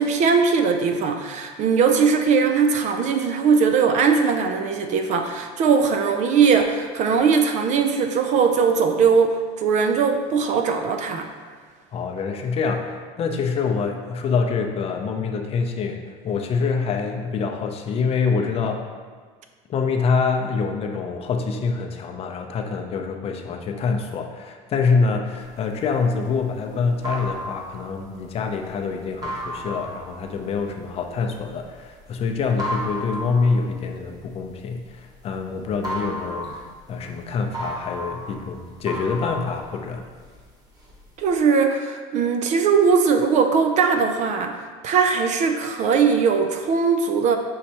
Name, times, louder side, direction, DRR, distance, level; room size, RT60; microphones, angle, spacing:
voice 1, 0.0-11.3 41.2-47.4, right 5 dB, 50° right, 6 dB, 0.4 m, -20 dB
voice 2, 11.9-18.9 19.7-40.1, left 5 dB, 40° left, 3 dB, 0.5 m, -25 dB
sound 1, 25.5-35.3 35.6-40.4 40.8-41.4, equal, 25° right, 1.0 m, -33 dB
5.5 x 3.1 x 2.8 m, 1.6 s
cardioid pair, 115°, 16 cm